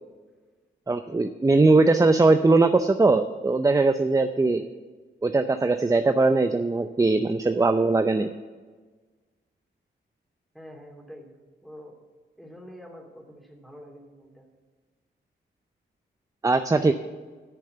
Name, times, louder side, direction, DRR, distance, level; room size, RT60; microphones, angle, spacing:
voice 1, 0.9-4.6 5.2-8.3 16.4-16.9, right 3 dB, 15° right, 9 dB, 0.5 m, -20 dB
voice 2, 10.5-11.3 11.6-11.9 12.4-14.4, equal, ahead, 0 dB, 3.0 m, -46 dB
10.5 x 6.6 x 7.9 m, 1.4 s
cardioid pair, 70°, 20 cm